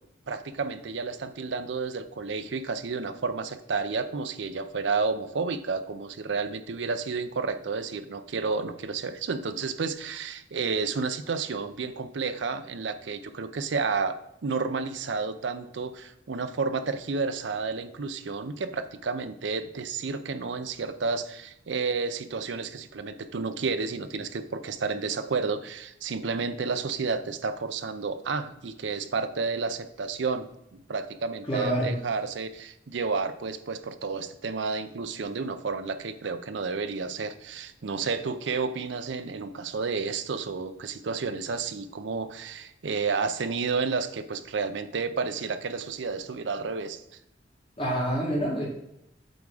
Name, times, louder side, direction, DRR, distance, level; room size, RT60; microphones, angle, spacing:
voice 1, 0.3-14.1 14.4-47.0, right 4 dB, 80° right, 9 dB, 0.6 m, -31 dB
voice 2, 31.5-31.9 47.8-48.7, right 1 dB, 30° left, -4 dB, 1.9 m, -27 dB
8.0 x 3.6 x 4.8 m, 0.81 s
head